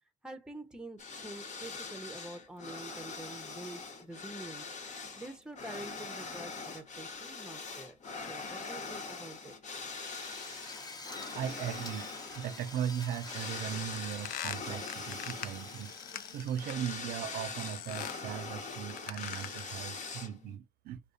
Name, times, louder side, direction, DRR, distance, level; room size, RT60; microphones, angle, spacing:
voice 1, 0.2-4.7 5.2-8.0 8.3-9.6, right 2 dB, 5° right, 0.7 m, -46 dB
sound 1, 1.0-20.6, left 4 dB, 55° left, 1.0 m, -43 dB
Drill, 9.9-17.8, left 3 dB, 25° left, 0.8 m, -48 dB
voice 2, 11.3-12.1 12.4-15.9 16.3-21.0, right 9 dB, 90° right, 0.4 m, -38 dB
sound 2, 13.7-17.1 17.6-18.3 18.8-19.8, left 11 dB, 90° left, 0.4 m, -43 dB
4.9 x 2.3 x 2.6 m
cardioid pair, 100°, 15 cm